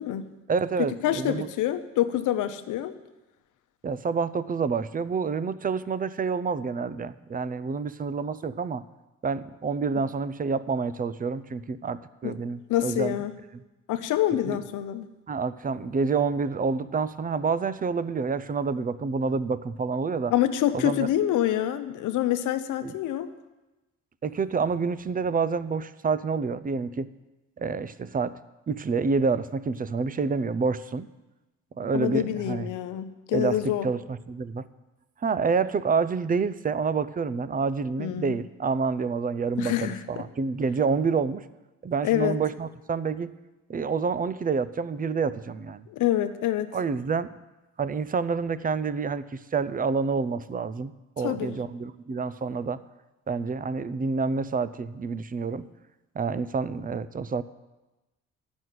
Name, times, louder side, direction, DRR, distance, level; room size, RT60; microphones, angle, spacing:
voice 1, 0.5-1.5 3.8-8.8 9.2-13.2 14.5-14.6 15.3-20.3 20.7-21.1 22.8-22.9 24.2-27.1 27.6-28.4 28.7-31.1 31.8-32.7 33.3-33.6 33.8-34.7 35.2-41.4 41.8-43.3 43.7-45.8 46.7-47.3 47.8-52.8 53.3-55.7 56.1-57.4, right 5 dB, 30° right, 16 dB, 0.6 m, -28 dB
voice 2, 1.0-3.0 12.2-12.4 12.7-13.3 13.9-15.1 20.3-23.3 31.9-33.9 38.0-38.4 39.6-40.2 42.0-42.4 45.9-46.7 51.2-51.5, left 12 dB, 85° left, 10 dB, 0.9 m, -26 dB
12.5 x 6.3 x 9.4 m, 1.1 s
cardioid pair, 90°, 30 cm